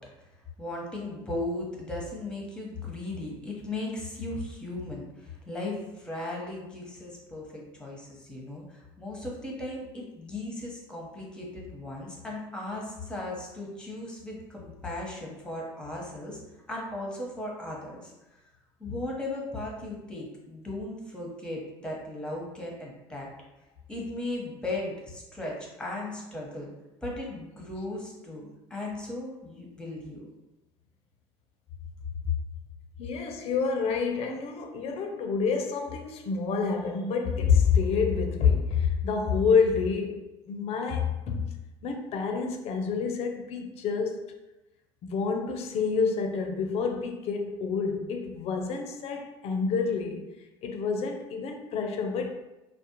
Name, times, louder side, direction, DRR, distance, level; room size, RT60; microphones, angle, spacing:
voice 1, 0.6-16.4 16.7-18.1 18.8-23.3 23.9-26.7 27.0-30.3, left 2 dB, 5° left, -2 dB, 0.9 m, -37 dB
voice 2, 33.0-41.5 41.8-44.3 45.0-50.3 50.6-52.4, left 5 dB, 50° left, 4 dB, 0.5 m, -28 dB
2.4 x 2.1 x 2.9 m, 1.0 s
hypercardioid pair, 80°, 13 cm